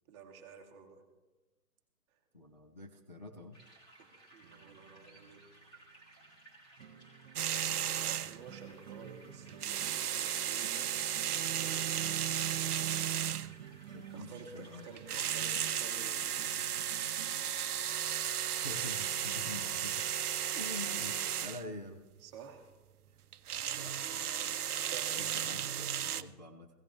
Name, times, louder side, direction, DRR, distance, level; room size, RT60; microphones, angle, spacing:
voice 1, 0.1-1.0 4.0-5.4 7.7-10.9 11.5-11.9 14.1-16.7 22.2-22.7 24.5-25.1, right 6 dB, 20° right, 2 dB, 1.0 m, -52 dB
voice 2, 2.3-3.6 13.9-15.3 18.5-20.0 20.5-22.0 23.8-24.6 25.1-26.7, left 1 dB, 30° left, 0 dB, 0.4 m, -46 dB
sound 1, 3.5-18.9, right 2 dB, 10° left, 2.0 m, -60 dB
sound 2, 4.4-18.4, right 8 dB, 40° right, 1.3 m, -53 dB
sound 3, 7.4-8.5 9.5-13.7 15.0-21.6 23.3-26.2, right 10 dB, 70° right, 0.6 m, -34 dB
16.0 x 16.0 x 3.1 m, 1.1 s
hypercardioid pair, 145°, 47 cm